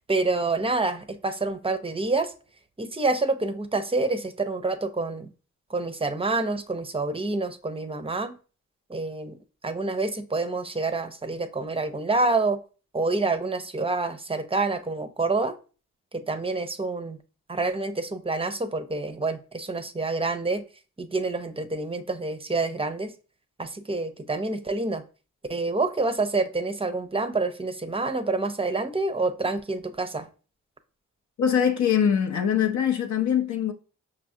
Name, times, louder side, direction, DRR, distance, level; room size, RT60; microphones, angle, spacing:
voice 1, 0.1-2.3 2.8-5.3 5.7-8.4 8.9-9.4 9.6-12.6 12.9-15.5 16.1-17.2 17.5-20.6 21.0-23.1 23.6-25.0 25.5-30.3, right 3 dB, 20° right, 0.5 m, -27 dB
voice 2, 31.4-33.7, left 8 dB, 65° left, 0.5 m, -23 dB
5.5 x 2.4 x 2.7 m
supercardioid pair, 40°, 32 cm